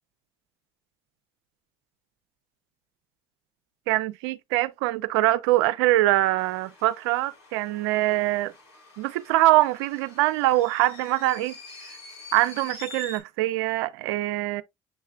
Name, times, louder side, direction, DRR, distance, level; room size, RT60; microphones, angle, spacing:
voice 1, 3.9-8.5 9.0-11.6 12.3-14.6, right 17 dB, 80° right, 0.5 m, -23 dB
sound 1, 6.4-13.2, left 4 dB, 85° left, 2.0 m, -47 dB
7.2 x 3.2 x 2.3 m
hypercardioid pair, 65°, 13 cm